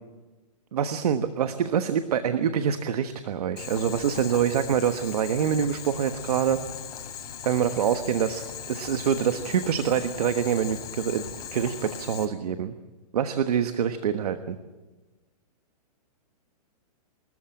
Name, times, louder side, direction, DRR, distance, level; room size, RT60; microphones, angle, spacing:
voice 1, 0.7-6.6 7.4-11.2 11.5-12.7 13.1-14.6, right 8 dB, 75° right, 9 dB, 1.3 m, -25 dB
Boiling, 3.6-12.2, left 8 dB, 75° left, 4.7 m, -39 dB
26.5 x 14.0 x 8.9 m, 1.2 s
hypercardioid pair, 140°, 20 cm